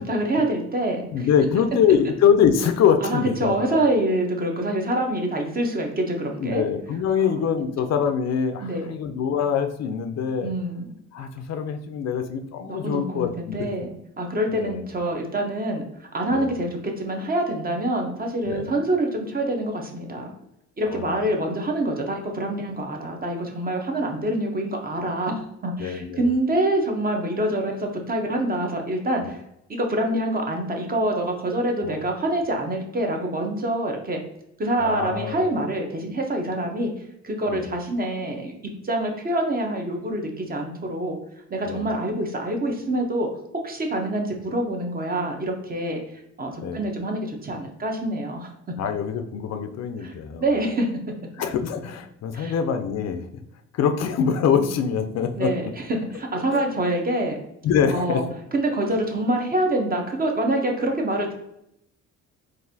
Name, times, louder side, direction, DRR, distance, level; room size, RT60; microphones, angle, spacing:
voice 1, 0.0-1.3 3.0-6.6 7.2-7.3 8.6-8.9 10.4-10.9 12.6-13.9 14.2-20.3 20.8-29.4 29.7-34.2 34.6-36.9 37.2-38.5 38.8-41.2 41.5-43.3 43.6-48.5 50.0-50.1 50.4-50.9 52.3-52.5 55.4-57.4 57.9-58.2 58.5-61.3, right 1 dB, 30° right, 2 dB, 0.8 m, -26 dB
voice 2, 1.1-3.8 6.4-10.5 11.1-13.7 14.5-14.8 16.3-16.5 18.4-18.7 20.9-21.2 25.8-26.3 29.2-29.3 31.8-32.0 34.8-35.5 37.5-37.7 41.7-41.9 46.6-46.8 48.8-50.4 51.4-53.3 53.7-55.5 56.5-56.6 57.6-58.3, left 7 dB, 60° left, 7 dB, 0.4 m, -24 dB
4.0 x 2.5 x 2.6 m, 0.80 s
cardioid pair, 90°, 30 cm